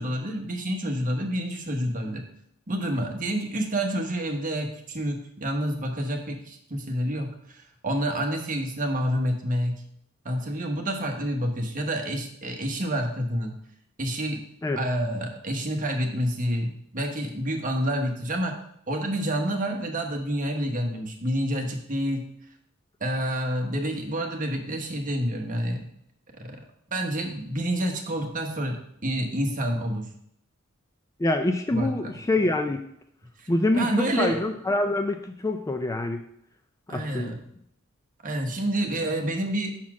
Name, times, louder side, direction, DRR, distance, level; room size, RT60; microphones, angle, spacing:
voice 1, 0.0-2.2 2.7-9.8 10.2-13.5 14.0-14.4 14.8-18.5 18.9-22.2 23.0-25.9 26.4-26.6 26.9-30.1 31.7-32.1 33.4-33.5 33.7-34.4 36.9-37.4 38.2-39.7, right 1 dB, 40° right, 2 dB, 1.1 m, -28 dB
voice 2, 31.2-32.8 33.5-36.2 36.9-37.4, left 2 dB, 15° left, 6 dB, 0.4 m, -25 dB
5.9 x 4.3 x 6.0 m, 0.72 s
head